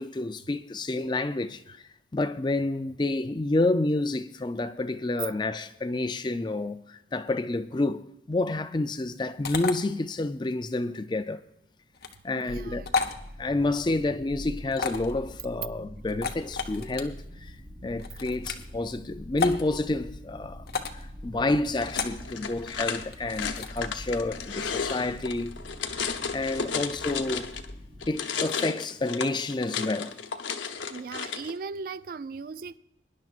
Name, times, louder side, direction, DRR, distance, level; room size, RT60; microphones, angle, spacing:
voice 1, 0.0-11.5 12.2-12.9 13.4-17.6 17.8-20.7 20.9-25.6 26.3-27.5 28.1-30.2, left 2 dB, 25° left, 0.4 m, -29 dB
sound 1, 9.4-9.7 11.9-12.2 12.9-13.2 14.7-15.1 16.1-17.0 18.0-18.7 19.4-19.6 20.7-21.0 21.9-22.2 23.1-23.8, left 5 dB, 55° left, 0.9 m, -31 dB
voice 2, 12.3-12.9 26.7-26.8 30.9-32.8, right 4 dB, 50° right, 0.3 m, -38 dB
sound 2, 12.5-28.1, equal, 30° right, 1.2 m, -44 dB
sound 3, 21.8-27.7 28.0-31.5, left 6 dB, 85° left, 0.8 m, -33 dB
23.0 x 10.5 x 2.5 m
head